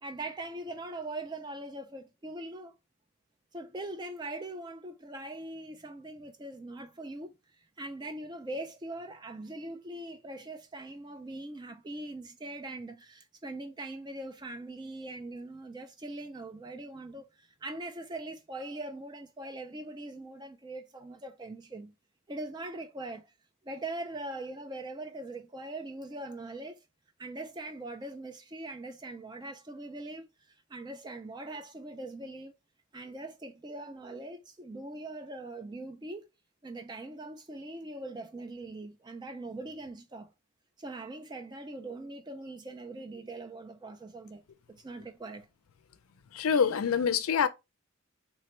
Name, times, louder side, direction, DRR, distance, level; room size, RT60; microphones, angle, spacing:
voice 1, 0.0-2.7 3.5-7.4 7.8-21.9 22.3-23.3 23.6-26.8 27.2-30.3 30.7-32.5 32.9-36.3 36.6-40.3 40.8-44.4 44.7-45.5, right 2 dB, 20° right, 0.3 m, -41 dB
voice 2, 46.3-47.5, left 7 dB, 80° left, 0.4 m, -25 dB
3.2 x 2.1 x 3.0 m
head